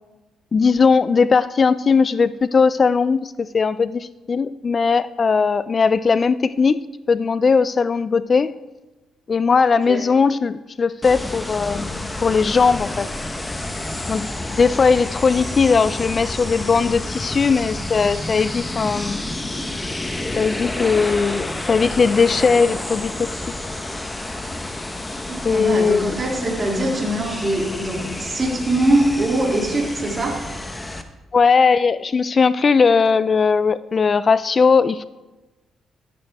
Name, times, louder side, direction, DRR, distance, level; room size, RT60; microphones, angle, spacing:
voice 1, 0.5-6.8 7.1-8.5 9.3-13.1 14.1-19.4 20.4-23.4 25.4-26.2 31.3-35.0, left 5 dB, 40° left, 15 dB, 0.4 m, -18 dB
sound 1, 11.0-31.0, left 1 dB, 15° left, 0.9 m, -29 dB
voice 2, 25.3-30.5, right 1 dB, 30° right, -2 dB, 2.7 m, -22 dB
15.0 x 8.8 x 3.4 m, 1.1 s
cardioid pair, 90°, 0 cm